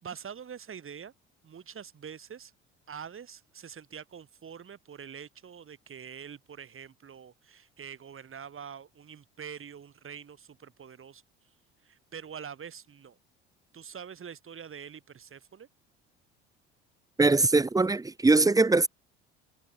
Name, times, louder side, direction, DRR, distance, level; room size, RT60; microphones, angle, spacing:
voice 1, 0.0-1.1 1.4-2.5 2.9-11.2 11.8-13.2 13.7-15.7, right 7 dB, 40° right, 5.6 m, -45 dB
voice 2, 17.2-18.9, right 3 dB, 10° right, 0.9 m, -22 dB
hypercardioid pair, 65°, 33 cm